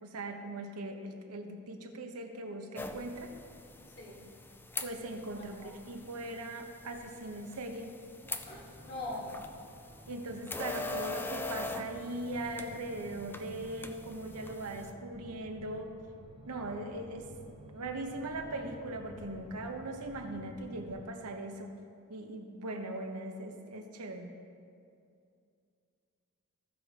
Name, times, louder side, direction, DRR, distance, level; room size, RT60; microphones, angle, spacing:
voice 1, 0.0-3.3 4.8-7.9 10.1-15.9 16.5-17.3 17.7-21.7 22.1-24.3, right 1 dB, 80° right, 4 dB, 0.9 m, -40 dB
sound 1, 2.7-14.9, left 3 dB, 10° left, 0.4 m, -43 dB
voice 2, 5.4-5.8 8.4-9.2, left 2 dB, 50° left, -3 dB, 2.4 m, -42 dB
sound 2, 8.2-21.1, right 1 dB, 25° right, 1.2 m, -52 dB
15.0 x 5.0 x 5.0 m, 2.4 s
head